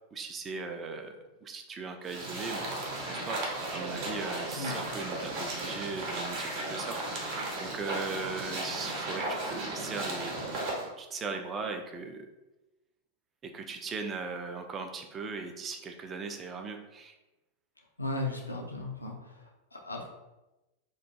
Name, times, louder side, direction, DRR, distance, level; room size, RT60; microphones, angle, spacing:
voice 1, 0.1-2.7 3.1-10.3 11.0-12.3 13.4-17.1, right 4 dB, 25° right, 5 dB, 0.3 m, -39 dB
sound 1, 2.0-10.9, right 2 dB, 45° right, 0.7 m, -35 dB
voice 2, 4.6-4.9 18.0-20.1, left 2 dB, 80° left, 1 dB, 0.4 m, -36 dB
2.4 x 2.2 x 2.7 m, 1.0 s
figure-of-eight pair, 90°, 0 cm